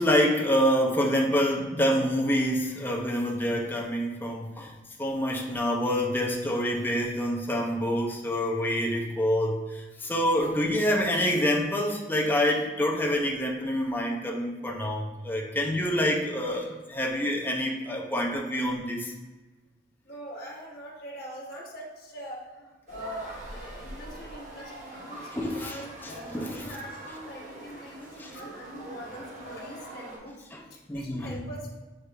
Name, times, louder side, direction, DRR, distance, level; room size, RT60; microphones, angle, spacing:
voice 1, 0.0-4.7 5.0-19.1 25.3-26.7 28.2-28.3 30.5-31.4, equal, 10° left, -1 dB, 0.5 m, -27 dB
voice 2, 20.0-30.3 30.7-31.8, equal, 60° left, -5 dB, 1.1 m, -43 dB
sound 1, 22.9-30.2, right 1 dB, 45° right, 1.1 m, -43 dB
6.5 x 2.4 x 3.3 m, 1.2 s
head